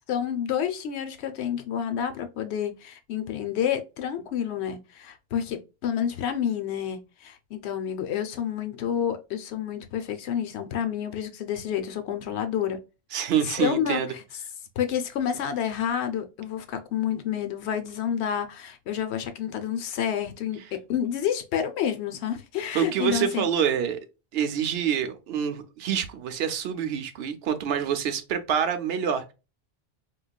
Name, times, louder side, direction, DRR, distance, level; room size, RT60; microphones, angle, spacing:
voice 1, 0.1-12.8 13.4-14.2 14.8-23.5, left 9 dB, 90° left, 0.9 m, -29 dB
voice 2, 13.1-14.1 22.7-24.0 24.3-29.3, right 8 dB, 70° right, 0.8 m, -26 dB
4.6 x 2.3 x 2.2 m
omnidirectional pair, 1.1 m